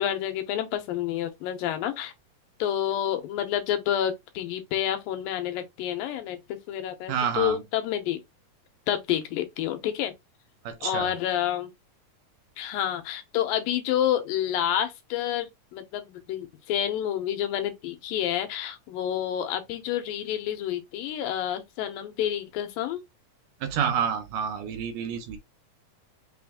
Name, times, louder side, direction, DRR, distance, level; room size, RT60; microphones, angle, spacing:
voice 1, 0.0-2.1 2.6-8.2 8.9-10.1 10.8-11.7 12.6-23.0, left 11 dB, 85° left, 2.6 m, -29 dB
voice 2, 7.1-7.6 10.6-11.1 23.6-25.4, right 7 dB, 75° right, 2.2 m, -28 dB
5.9 x 2.5 x 3.5 m
omnidirectional pair, 4.0 m